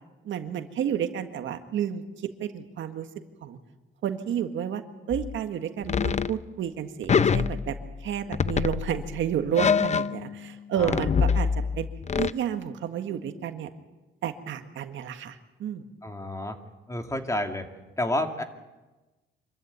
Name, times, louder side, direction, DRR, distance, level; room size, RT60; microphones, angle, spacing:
voice 1, 0.2-3.1 3.4-3.6 4.0-4.8 5.1-11.5 11.8-11.9 12.2-13.7 14.2-15.9, right 9 dB, 75° right, 7 dB, 1.8 m, -31 dB
sound 1, 5.1-5.4 5.8-6.4 7.1-8.1 8.3-10.5 10.8-12.3, left 6 dB, 35° left, 0.7 m, -25 dB
voice 2, 10.8-11.1 16.0-16.6 16.9-17.7 18.0-18.4, left 1 dB, 15° left, 5 dB, 2.4 m, -30 dB
25.5 x 14.0 x 9.4 m, 1.2 s
cardioid pair, 90°, 20 cm